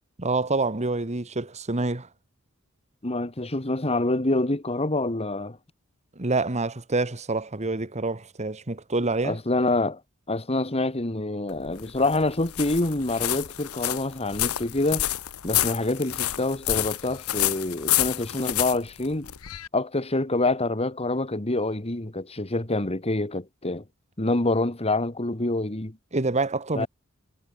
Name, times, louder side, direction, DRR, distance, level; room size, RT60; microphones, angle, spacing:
voice 1, 0.2-2.1 6.2-9.4 26.1-26.9, right 3 dB, 30° right, 1.5 m, -27 dB
voice 2, 3.0-5.6 9.2-10.0 10.3-15.1 15.4-19.3 19.7-23.8 24.2-26.0 26.7-26.9, left 2 dB, 30° left, 1.9 m, -26 dB
sound 1, 11.5-19.7, left 14 dB, 80° left, 0.9 m, -29 dB
head